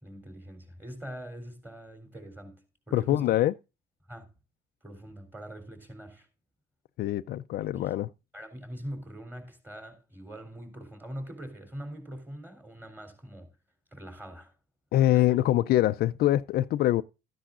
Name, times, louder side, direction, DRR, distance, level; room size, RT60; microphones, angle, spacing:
voice 1, 0.0-3.3 4.1-4.3 4.8-6.3 7.7-8.0 8.3-13.5 13.9-14.6 15.1-15.2, equal, 10° right, 3.6 m, -43 dB
voice 2, 2.9-3.5 7.0-8.1 14.9-17.0, left 14 dB, 65° left, 0.5 m, -24 dB
13.5 x 10.0 x 2.5 m
cardioid pair, 110°, 17 cm